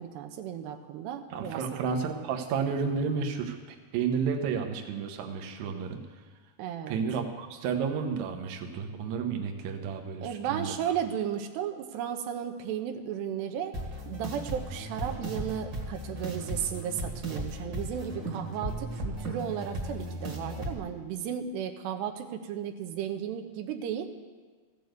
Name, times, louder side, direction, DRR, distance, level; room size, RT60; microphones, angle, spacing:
voice 1, 0.0-1.8 6.6-7.0 10.2-13.7 14.1-24.1, right 9 dB, 85° right, 5 dB, 3.0 m, -34 dB
voice 2, 1.3-3.6 3.9-6.0 6.9-10.7, right 6 dB, 70° right, 4 dB, 1.8 m, -31 dB
sound 1, 13.7-20.7, right 1 dB, 45° right, 1.6 m, -36 dB
14.5 x 7.0 x 7.9 m, 1.5 s
omnidirectional pair, 4.7 m